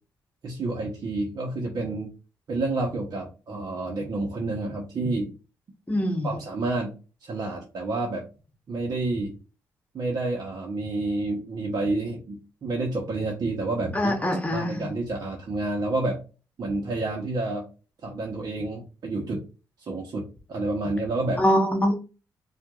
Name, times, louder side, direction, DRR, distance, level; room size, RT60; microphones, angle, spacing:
voice 1, 0.4-2.1 2.5-5.3 6.2-6.9 7.2-8.3 8.7-9.3 9.9-14.1 14.5-16.2 16.6-17.6 18.0-19.4 19.8-20.2 20.5-21.4, right 2 dB, 55° right, -1 dB, 1.0 m, -29 dB
voice 2, 5.9-6.3 13.9-14.9 21.4-22.0, equal, 20° left, 3 dB, 1.1 m, -23 dB
4.5 x 2.5 x 2.3 m, 0.32 s
cardioid pair, 80°, 8 cm